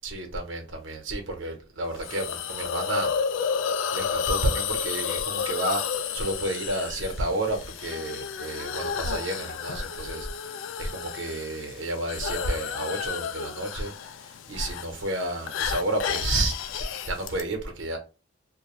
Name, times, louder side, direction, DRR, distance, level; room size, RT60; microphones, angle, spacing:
voice 1, 0.0-3.1 3.9-5.8 6.1-13.9 14.2-16.5 17.1-18.0, right 1 dB, 70° right, 0.8 m, -31 dB
Hiss, 2.0-17.4, left 7 dB, 75° left, 0.3 m, -32 dB
2.5 x 2.2 x 2.9 m
head